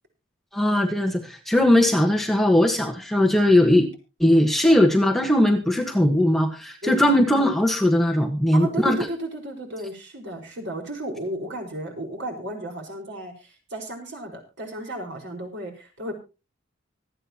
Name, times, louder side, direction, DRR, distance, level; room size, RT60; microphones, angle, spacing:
voice 1, 0.5-3.9 4.2-9.0, left 1 dB, ahead, 2 dB, 1.4 m, -19 dB
voice 2, 8.5-16.1, right 1 dB, 60° right, 3 dB, 5.0 m, -33 dB
25.5 x 9.0 x 2.9 m, 0.30 s
head